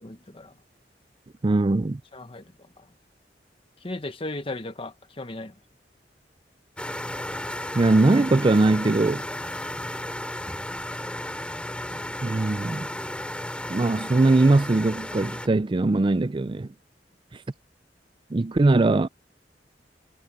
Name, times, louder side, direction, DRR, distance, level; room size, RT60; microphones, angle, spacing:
voice 1, 0.0-0.5 2.1-2.5 2.8-2.9 3.8-5.6, left 2 dB, 30° left, 1.4 m, -36 dB
voice 2, 1.4-2.0 7.7-9.3 12.2-12.9 13.7-16.7 17.3-17.4 18.3-19.1, right 2 dB, 30° right, 0.4 m, -21 dB
sound 1, 6.8-15.5, left 1 dB, 5° left, 5.3 m, -34 dB
head